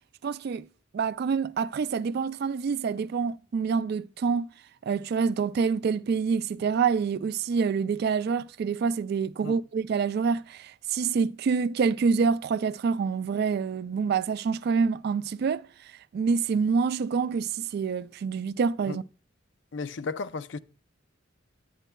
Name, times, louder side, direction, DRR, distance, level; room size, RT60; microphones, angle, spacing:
voice 1, 0.2-0.7 0.9-4.5 4.8-15.7 16.1-19.0, right 5 dB, 55° right, 0.3 m, -27 dB
voice 2, 19.7-20.6, left 4 dB, 65° left, 0.5 m, -34 dB
10.5 x 9.0 x 2.2 m
head